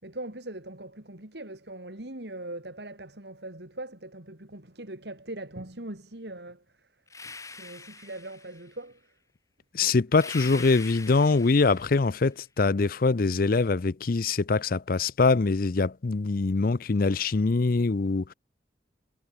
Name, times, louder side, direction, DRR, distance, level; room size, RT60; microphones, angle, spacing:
voice 1, 0.0-6.6 7.2-9.0, right 1 dB, 65° right, 3.5 m, -41 dB
sound 1, 7.1-8.7 10.1-12.2, left 4 dB, 20° left, 2.2 m, -43 dB
voice 2, 9.7-18.3, left 3 dB, 50° left, 0.6 m, -23 dB
head